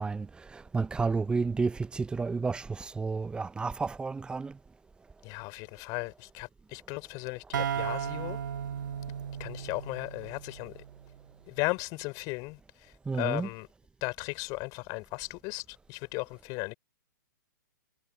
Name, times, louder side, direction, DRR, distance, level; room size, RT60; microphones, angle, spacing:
voice 1, 0.0-4.6 13.0-13.5, right 4 dB, 10° right, 1.1 m, -31 dB
voice 2, 5.2-8.4 9.4-10.8 11.5-13.7 14.0-16.7, left 27 dB, 35° left, 3.9 m, -36 dB
sound 1, 7.5-11.2, right 8 dB, 65° right, 1.6 m, -35 dB
figure-of-eight pair, 115°, 11 cm